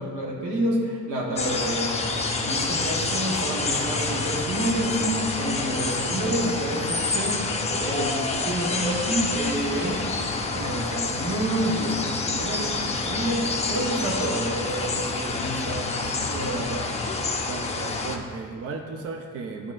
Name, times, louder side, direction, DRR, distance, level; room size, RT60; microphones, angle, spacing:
voice 1, 0.0-7.4 7.7-10.0 10.5-16.8, right 1 dB, 90° right, -2 dB, 1.2 m, -29 dB
sound 1, 1.4-18.2, left 3 dB, 20° left, 0.6 m, -28 dB
voice 2, 17.4-19.7, right 4 dB, 50° right, 3 dB, 0.6 m, -35 dB
10.5 x 4.9 x 2.5 m, 2.2 s
cardioid pair, 90°, 30 cm